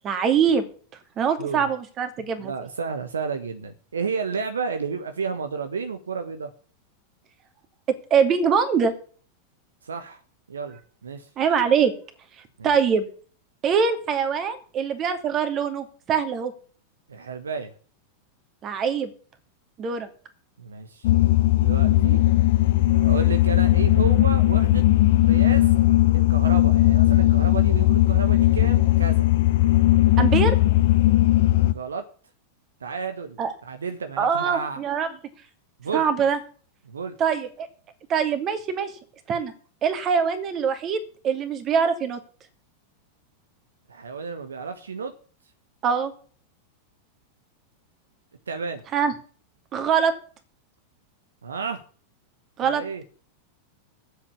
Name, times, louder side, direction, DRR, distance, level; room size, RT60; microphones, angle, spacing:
voice 1, 0.0-0.7 1.2-2.5 8.1-8.9 11.4-11.9 12.6-13.1 13.6-16.5 18.6-19.1 19.8-20.1 30.2-30.6 33.4-33.5 34.2-35.1 35.9-36.4 37.2-37.7 38.1-38.9 39.3-39.5 39.8-42.2 45.8-46.1 48.9-49.1 49.7-50.1 52.6-53.0, right 6 dB, 30° right, 9 dB, 2.5 m, -23 dB
voice 2, 2.4-6.5 9.8-10.2 10.5-11.3 12.6-12.7 17.1-17.7 20.6-21.1 21.6-22.2 23.0-24.8 25.3-25.7 26.1-29.3 31.6-32.0 32.8-34.8 35.8-36.0 36.8-37.2 43.9-45.1 48.5-48.8 51.4-51.8 52.6-53.0, right 5 dB, 70° right, 8 dB, 1.2 m, -31 dB
sound 1, 21.0-31.7, left 15 dB, 55° left, 0.8 m, -18 dB
10.0 x 8.2 x 8.4 m, 0.42 s
figure-of-eight pair, 90°, 0 cm